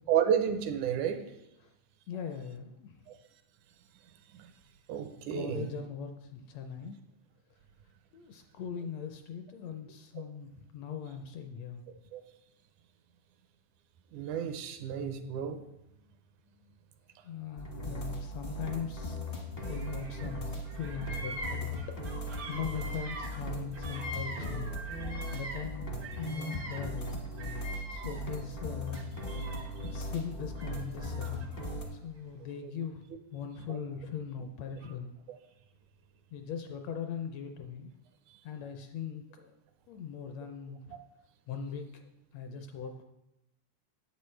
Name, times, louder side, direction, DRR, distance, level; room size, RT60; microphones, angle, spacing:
voice 1, 0.1-1.2 3.1-3.2 4.3-4.5 4.9-5.7 12.1-12.2 14.1-15.6 29.3-29.9 32.6-32.7, right 8 dB, 85° right, 8 dB, 2.2 m, -31 dB
voice 2, 2.1-2.9 5.3-7.0 8.1-11.8 16.5-16.8 17.2-21.8 22.2-24.7 25.3-27.2 27.9-29.1 29.9-31.5 31.9-35.1 36.3-37.9 38.4-39.6 39.9-41.0 41.5-43.0, left 7 dB, 75° left, 6 dB, 1.6 m, -40 dB
sound 1, 17.6-31.8, equal, 50° left, 0.6 m, -38 dB
Bird vocalization bird call bird song, 19.6-20.4 20.6-25.7 26.0-28.4 28.9-29.9 30.6-31.7, right 1 dB, 70° right, 1.0 m, -44 dB
11.5 x 8.1 x 3.2 m, 0.89 s
omnidirectional pair, 3.5 m